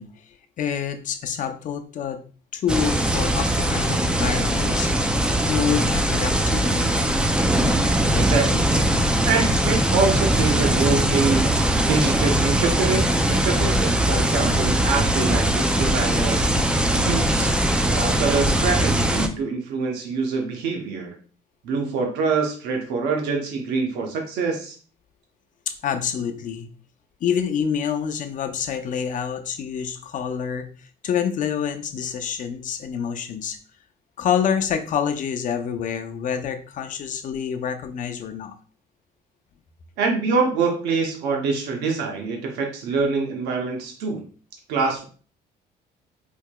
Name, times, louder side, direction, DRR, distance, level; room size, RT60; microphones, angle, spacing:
voice 1, 0.0-2.2 2.5-5.1 5.5-6.9 25.7-26.7 27.2-33.6 34.2-38.5, left 8 dB, 50° left, 7 dB, 0.5 m, -27 dB
sound 1, 2.7-19.3, right 1 dB, 5° right, 0.3 m, -21 dB
voice 2, 8.1-8.7 9.3-11.4 11.7-17.5 17.9-21.1 21.6-24.8 40.0-44.2 44.7-45.0, right 4 dB, 85° right, 2 dB, 0.8 m, -25 dB
4.5 x 2.8 x 2.2 m, 0.39 s
cardioid pair, 110°, 17 cm